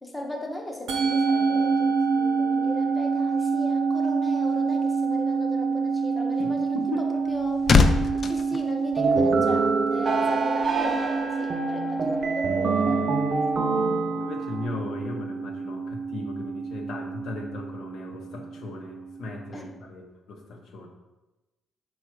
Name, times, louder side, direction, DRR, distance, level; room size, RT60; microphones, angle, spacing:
voice 1, 0.0-6.8 7.3-7.6 8.2-13.0 19.5-19.8, left 1 dB, 15° left, 1 dB, 0.8 m, -37 dB
Musical instrument, 0.9-19.4, right 5 dB, 90° right, 0.8 m, -28 dB
voice 2, 6.4-7.1 13.7-20.9, left 3 dB, 70° left, 2 dB, 0.7 m, -37 dB
sound 1, 6.9-9.6 9.9-10.2, left 4 dB, 45° left, 0.3 m, -24 dB
sound 2, 9.0-14.7, right 4 dB, 45° right, 0.4 m, -25 dB
4.5 x 2.3 x 4.4 m, 1.1 s
cardioid pair, 90°, 0 cm